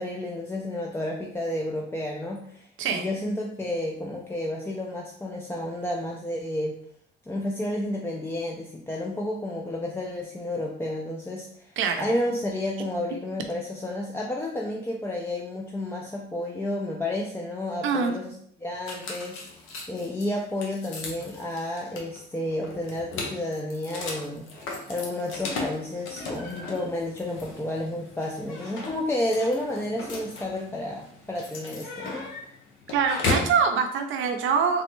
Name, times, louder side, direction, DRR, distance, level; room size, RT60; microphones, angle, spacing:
voice 1, 0.0-6.8 7.3-18.3 18.6-19.4 19.9-32.2, left 1 dB, 10° left, -2 dB, 0.4 m, -31 dB
voice 2, 11.8-12.1 17.8-18.1 32.9-34.8, right 6 dB, 80° right, 6 dB, 0.5 m, -24 dB
sound 1, 18.9-33.6, left 3 dB, 85° left, 0.7 m, -36 dB
3.3 x 2.0 x 3.0 m, 0.67 s
cardioid pair, 90°, 20 cm